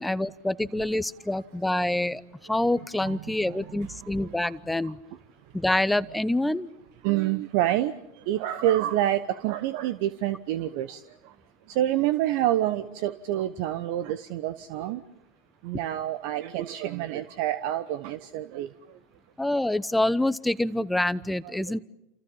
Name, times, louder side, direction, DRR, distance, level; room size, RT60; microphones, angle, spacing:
voice 1, 0.0-5.0 5.5-6.7 19.4-21.8, left 1 dB, 5° left, 16 dB, 1.0 m, -26 dB
voice 2, 3.0-3.9 4.4-4.5 4.8-4.9 7.0-11.3 11.7-15.0 15.6-18.7 21.4-21.8, right 13 dB, 55° right, 14 dB, 1.0 m, -28 dB
29.5 x 28.5 x 5.5 m, 0.85 s
figure-of-eight pair, 85°, 0 cm